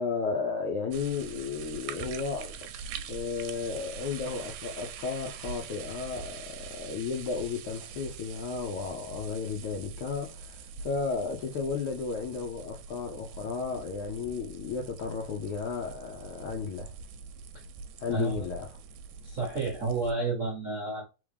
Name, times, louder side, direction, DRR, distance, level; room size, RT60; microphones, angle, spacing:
voice 1, 0.0-16.9 18.0-18.7, left 5 dB, 80° left, 1.2 m, -34 dB
sound 1, 0.9-20.1, right 6 dB, 80° right, 1.7 m, -44 dB
voice 2, 18.1-18.5 19.2-21.0, right 3 dB, 50° right, 0.9 m, -30 dB
4.0 x 3.6 x 3.4 m
omnidirectional pair, 3.4 m